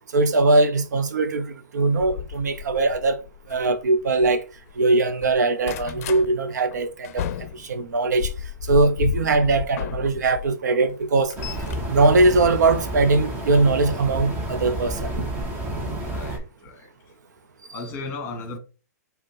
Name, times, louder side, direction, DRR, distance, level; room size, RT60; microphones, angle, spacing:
voice 1, 0.1-3.2 3.5-4.4 4.8-7.3 7.6-8.3 8.7-11.3 11.9-15.3, right 3 dB, 80° right, 0.8 m, -21 dB
sound 1, 2.0-4.8 5.1-6.3 6.7-10.5 10.9-13.1 14.1-14.3 14.8-14.9 15.1-15.2, left 9 dB, 55° left, 0.5 m, -33 dB
sound 2, 11.4-16.4, right 1 dB, 20° right, 1.2 m, -30 dB
voice 2, 16.0-16.9 17.7-18.6, left 3 dB, 25° left, 1.4 m, -35 dB
5.2 x 2.4 x 4.1 m
hypercardioid pair, 125°, 9 cm